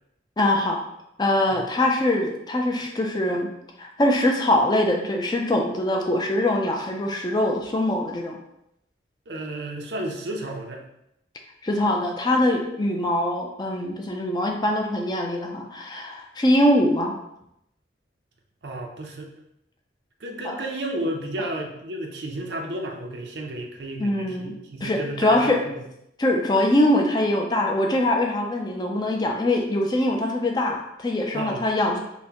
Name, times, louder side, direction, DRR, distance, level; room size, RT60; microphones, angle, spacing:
voice 1, 0.4-0.8 1.2-3.5 3.8-8.4 11.6-17.2 20.4-20.6 24.0-24.5 24.8-25.6 26.2-32.0, left 1 dB, 25° left, 1 dB, 0.4 m, -23 dB
voice 2, 9.3-10.8 18.6-19.3 20.2-25.6 31.3-31.7, right 1 dB, 75° right, 2 dB, 0.6 m, -32 dB
5.6 x 2.1 x 2.8 m, 0.81 s
head